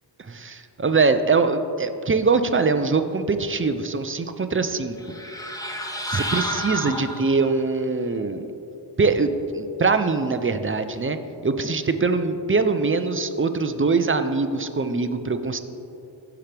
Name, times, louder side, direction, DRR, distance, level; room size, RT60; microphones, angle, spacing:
voice 1, 0.2-5.0 6.1-8.5 9.0-11.2 11.4-15.6, right 4 dB, 30° right, 9 dB, 0.5 m, -23 dB
sound 1, 5.0-7.6, equal, 10° left, 0.9 m, -30 dB
15.0 x 5.9 x 3.4 m, 2.8 s
wide cardioid pair, 80°, 45 cm